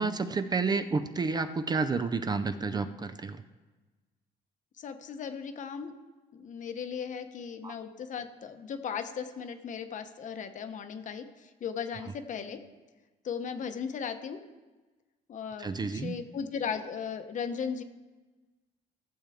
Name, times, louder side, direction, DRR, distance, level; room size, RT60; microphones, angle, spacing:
voice 1, 0.0-3.4 7.6-7.7 15.6-16.2, right 4 dB, 25° right, 10 dB, 0.5 m, -30 dB
voice 2, 4.8-5.9 6.3-12.6 13.2-14.4 15.3-17.8, left 6 dB, 50° left, 8 dB, 0.9 m, -37 dB
15.0 x 7.2 x 3.6 m, 1.2 s
cardioid pair, 110°, 17 cm